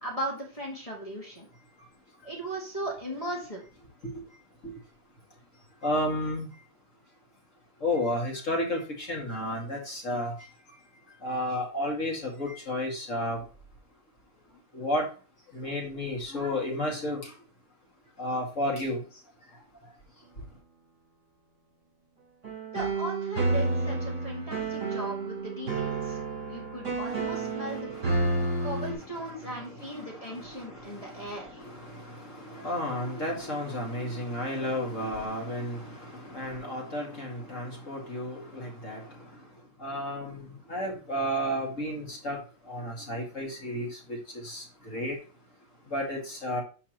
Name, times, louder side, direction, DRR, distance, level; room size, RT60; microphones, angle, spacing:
voice 1, 0.0-1.5 2.2-3.6 22.7-26.2 26.5-27.9 28.6-31.6, right 1 dB, 20° left, -4 dB, 2.1 m, -37 dB
voice 2, 5.8-6.5 7.8-10.3 11.2-13.4 14.7-15.1 15.5-17.2 18.2-19.0 27.1-27.2 27.7-27.8 28.1-28.2 29.5-29.7 29.9-30.1 30.4-30.6 31.6-35.9 36.3-39.0 39.8-40.4 40.7-42.4 42.7-43.9 44.4-44.6 44.9-45.1 45.9-46.6, left 1 dB, 45° left, -2 dB, 2.4 m, -32 dB
sound 1, 22.4-28.9, right 3 dB, 65° right, 5.0 m, -30 dB
11.5 x 3.9 x 3.0 m, 0.37 s
omnidirectional pair, 2.0 m